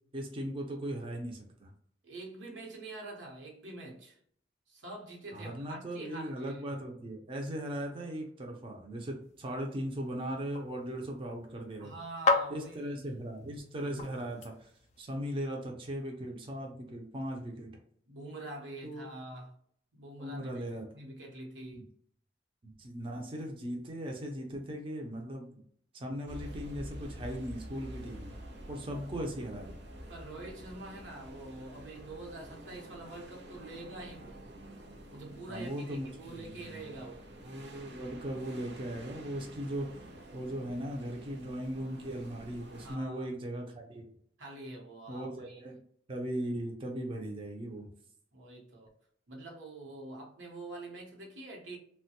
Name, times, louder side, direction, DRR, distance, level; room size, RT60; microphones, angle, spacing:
voice 1, 0.1-1.7 5.3-11.9 12.5-14.7 15.0-17.7 18.8-19.1 20.2-20.9 21.7-21.8 22.6-25.6 25.9-28.4 28.7-29.8 35.5-36.8 37.4-39.9 40.3-44.1 45.1-45.8 46.1-47.9, equal, 30° right, 0.5 m, -38 dB
voice 2, 2.0-4.2 4.7-6.6 11.8-13.2 18.0-19.5 19.9-20.6 20.9-21.9 28.9-29.1 30.1-34.4 35.1-37.3 42.8-43.3 44.4-45.6 48.3-48.9 49.3-51.8, right 2 dB, 90° right, 0.9 m, -45 dB
sound 1, 9.2-15.0, left 3 dB, 40° left, 0.4 m, -36 dB
sound 2, 26.3-43.0, right 1 dB, 70° right, 0.6 m, -48 dB
3.0 x 2.2 x 2.8 m
head